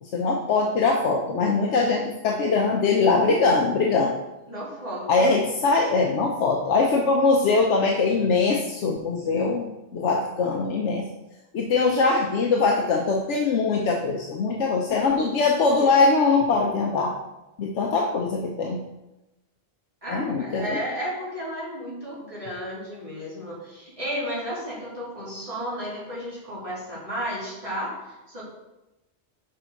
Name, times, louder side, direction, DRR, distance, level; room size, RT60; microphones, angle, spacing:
voice 1, 0.0-4.1 5.1-11.1 11.5-17.1 17.6-18.8 20.1-20.8, left 4 dB, 80° left, 1 dB, 1.0 m, -22 dB
voice 2, 4.5-5.3 20.0-28.4, equal, 30° right, -7 dB, 2.7 m, -33 dB
6.6 x 5.4 x 4.6 m, 0.98 s
omnidirectional pair, 1.2 m